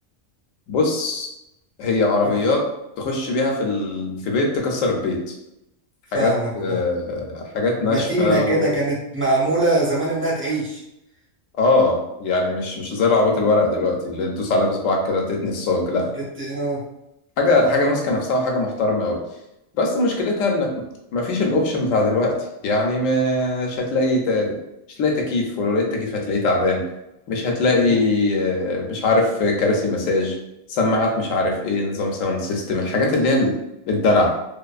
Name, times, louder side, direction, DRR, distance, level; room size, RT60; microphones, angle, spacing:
voice 1, 0.7-1.3 1.8-2.6 3.0-5.3 6.1-8.7 11.5-16.1 17.4-19.2 19.7-20.8 21.1-22.4 22.6-24.6 25.0-26.8 27.3-30.3 30.7-33.5 33.9-34.4, left 2 dB, 80° left, 1 dB, 0.9 m, -21 dB
voice 2, 6.1-6.8 7.9-10.8 16.4-16.8 27.9-28.0, right 2 dB, 20° right, -6 dB, 0.3 m, -22 dB
2.5 x 2.4 x 2.3 m, 0.87 s
omnidirectional pair, 1.3 m